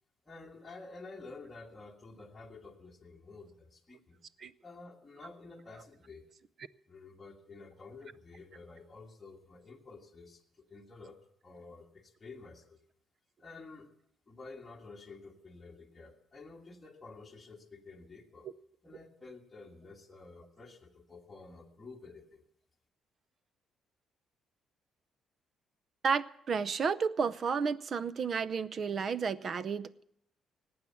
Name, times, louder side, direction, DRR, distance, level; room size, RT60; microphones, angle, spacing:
voice 1, 0.2-4.2 4.6-6.3 6.9-11.2 11.4-12.8 13.4-13.9 14.3-18.5 18.8-22.4, left 3 dB, 15° left, 1.7 m, -51 dB
voice 2, 26.0-30.0, right 5 dB, 40° right, 0.6 m, -32 dB
18.5 x 8.6 x 7.1 m
cardioid pair, 145°, 0 cm